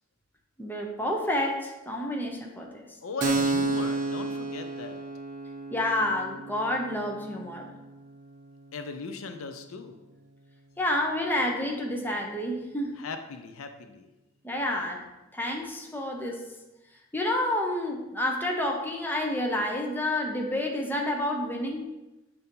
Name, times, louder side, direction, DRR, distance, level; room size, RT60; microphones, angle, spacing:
voice 1, 0.6-2.9 5.7-7.7 10.8-12.9 14.4-15.0 15.3-16.4 17.1-21.9, left 1 dB, 10° left, 0 dB, 0.8 m, -29 dB
voice 2, 3.0-5.0 8.7-10.0 13.0-14.1, left 4 dB, 90° left, 7 dB, 0.5 m, -38 dB
Keyboard (musical), 3.2-10.5, right 3 dB, 40° right, 0.5 m, -33 dB
6.6 x 2.7 x 5.3 m, 1.0 s
head